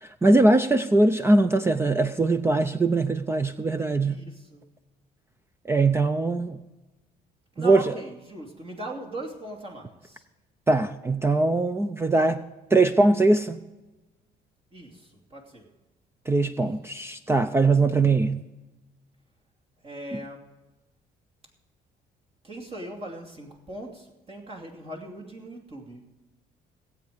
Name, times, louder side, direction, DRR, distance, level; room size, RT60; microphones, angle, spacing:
voice 1, 0.0-4.2 5.7-6.6 7.6-7.8 10.7-12.4 12.7-13.6 16.3-18.4, right 2 dB, 15° right, 0.5 m, -21 dB
voice 2, 4.0-4.7 7.5-10.2 14.7-15.7 19.8-20.6 22.4-26.1, right 1 dB, 35° right, 2.7 m, -40 dB
17.5 x 8.4 x 5.1 m
cardioid pair, 110°, 17 cm